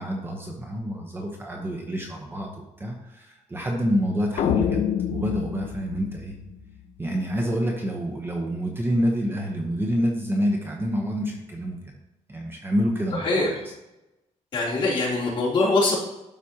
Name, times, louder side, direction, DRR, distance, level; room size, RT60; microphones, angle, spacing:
voice 1, 0.0-6.4 7.0-11.8 12.3-13.7, equal, 20° right, 0 dB, 0.9 m, -27 dB
sound 1, 4.4-6.8, left 8 dB, 90° left, 0.8 m, -27 dB
voice 2, 14.5-15.9, left 2 dB, 40° left, -6 dB, 3.1 m, -22 dB
12.5 x 5.0 x 2.9 m, 0.94 s
wide cardioid pair, 180°, 13 cm